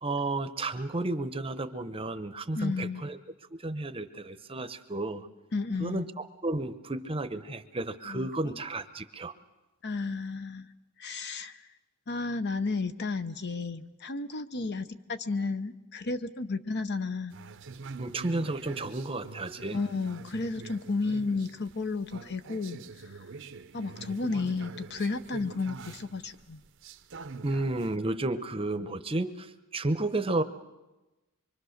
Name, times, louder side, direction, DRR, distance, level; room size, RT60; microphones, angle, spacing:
voice 1, 0.0-3.2 3.5-5.3 5.8-9.3 18.0-19.8 27.4-30.4, right 2 dB, 25° right, 11 dB, 0.8 m, -32 dB
voice 2, 2.6-3.0 5.5-6.1 8.1-8.6 9.8-10.7 11.0-11.6 12.1-17.3 19.7-22.8 23.7-26.6, left 3 dB, 50° left, 11 dB, 0.8 m, -32 dB
sound 1, 17.3-28.0, right 4 dB, 60° right, 0.7 m, -45 dB
25.0 x 24.0 x 6.5 m, 1.1 s
head